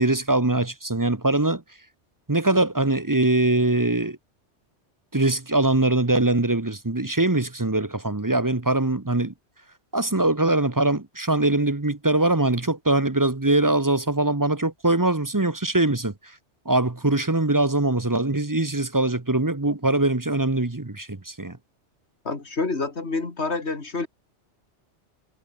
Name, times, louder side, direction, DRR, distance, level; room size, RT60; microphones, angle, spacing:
voice 1, 0.0-1.6 2.3-4.2 5.1-9.3 9.9-16.1 16.6-21.6, right 2 dB, 15° right, 1.1 m, -22 dB
voice 2, 22.2-24.1, left 3 dB, 70° left, 3.0 m, -28 dB
omnidirectional pair, 1.2 m